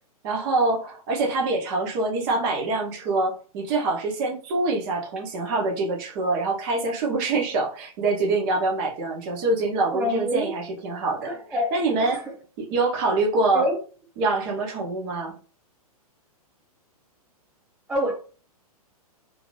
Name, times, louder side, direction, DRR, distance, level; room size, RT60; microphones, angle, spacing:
voice 1, 0.2-11.3 11.7-12.2 12.6-13.6 14.2-15.3, right 3 dB, 35° right, 1.1 m, -25 dB
voice 2, 9.9-10.6 11.2-11.7 12.0-12.3 13.5-13.8 17.9-18.1, equal, 5° right, 0.5 m, -27 dB
3.1 x 2.7 x 3.2 m
figure-of-eight pair, 110°, 19 cm